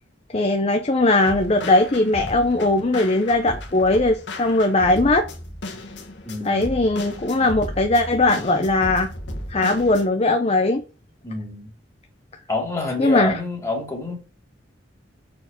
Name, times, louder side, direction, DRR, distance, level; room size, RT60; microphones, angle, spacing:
voice 1, 0.3-5.3 6.4-9.1 9.5-10.8 13.0-13.3, left 2 dB, 35° left, 0.7 m, -19 dB
sound 1, 1.3-10.1, left 1 dB, 70° left, 1.5 m, -35 dB
voice 2, 6.2-6.7 11.2-11.7 12.5-14.2, left 2 dB, 15° left, 2.7 m, -27 dB
6.6 x 4.5 x 6.3 m
head